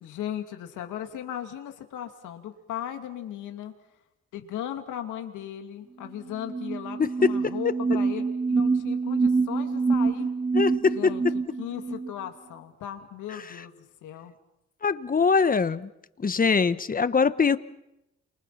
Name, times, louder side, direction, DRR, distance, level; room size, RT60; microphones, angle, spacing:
voice 1, 0.0-3.7 4.3-10.3 11.0-11.2 11.6-13.7 14.0-14.3, left 10 dB, 90° left, 5 dB, 2.6 m, -37 dB
sound 1, 6.1-6.2 6.4-12.1, right 4 dB, 15° right, 0.9 m, -26 dB
voice 2, 7.0-7.3 10.5-11.1 14.8-15.9 16.2-17.6, left 5 dB, 30° left, 14 dB, 1.1 m, -22 dB
29.0 x 26.5 x 5.9 m, 0.88 s
cardioid pair, 90°, 30 cm